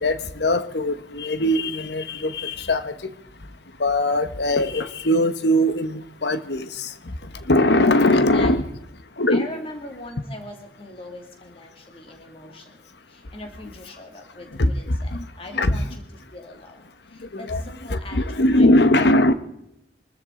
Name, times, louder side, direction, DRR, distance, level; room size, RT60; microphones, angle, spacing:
voice 1, 0.0-3.0 3.8-6.9 7.5-8.6 9.2-9.5 14.6-15.2 15.5-15.8 17.3-17.6 17.9-19.3, left 1 dB, 65° left, 1.1 m, -20 dB
voice 2, 8.1-8.5 9.3-12.8 13.1-16.0 16.3-19.3, left 1 dB, 30° left, 2.3 m, -41 dB
25.0 x 13.5 x 3.8 m
head